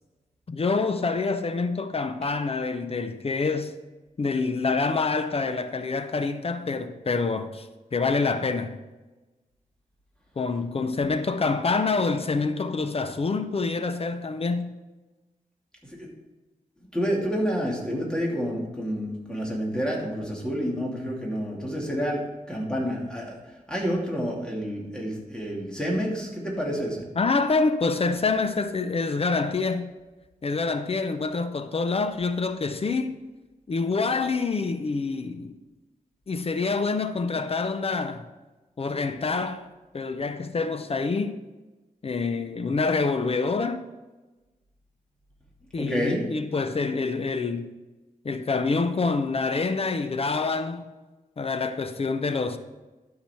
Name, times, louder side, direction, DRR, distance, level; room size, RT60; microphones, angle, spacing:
voice 1, 0.5-3.8 4.2-8.8 10.4-14.8 27.2-29.9 30.4-33.2 33.7-35.5 36.3-38.3 38.8-39.7 39.9-41.4 42.0-43.9 45.7-47.7 48.2-50.8 51.4-52.6, left 4 dB, 45° left, 0.6 m, -26 dB
voice 2, 16.9-23.4 23.7-27.0 45.8-46.2, equal, 5° left, 2.7 m, -29 dB
12.0 x 5.9 x 4.4 m
wide cardioid pair, 105°, 14 cm